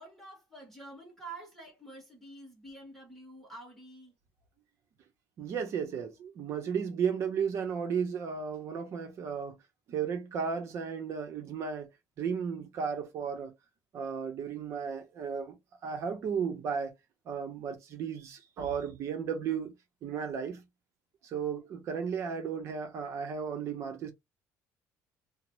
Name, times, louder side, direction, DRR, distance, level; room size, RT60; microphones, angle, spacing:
voice 1, 0.0-4.1, right 2 dB, 5° left, 0.9 m, -48 dB
voice 2, 5.4-9.6 9.9-11.9 12.2-13.5 13.9-16.9 17.3-19.7 20.0-20.6 21.2-24.1, right 6 dB, 50° right, 0.7 m, -34 dB
2.5 x 2.0 x 3.0 m
cardioid pair, 155°, 6 cm